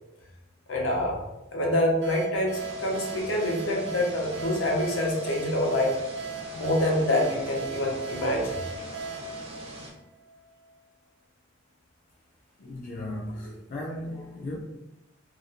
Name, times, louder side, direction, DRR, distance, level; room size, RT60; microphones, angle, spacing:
voice 1, 0.7-1.2 1.5-6.0 6.5-8.6, left 1 dB, 85° left, -1 dB, 0.7 m, -26 dB
sound 1, 2.0-10.5, right 3 dB, 80° right, 0.6 m, -37 dB
sound 2, 2.5-9.9, right 1 dB, 30° right, 0.5 m, -43 dB
voice 2, 12.6-14.6, left 1 dB, 45° left, -4 dB, 0.4 m, -36 dB
2.4 x 2.1 x 2.8 m, 0.95 s
head